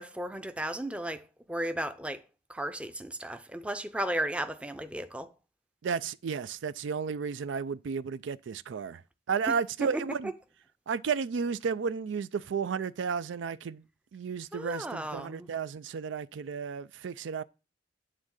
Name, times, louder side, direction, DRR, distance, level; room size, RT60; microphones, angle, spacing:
voice 1, 0.0-2.2 2.5-5.3 9.8-10.3 14.5-15.5, right 1 dB, 5° right, 0.5 m, -35 dB
voice 2, 5.8-9.0 9.3-10.3 10.9-13.8 14.1-17.4, right 6 dB, 85° right, 0.4 m, -33 dB
9.6 x 3.7 x 6.4 m
head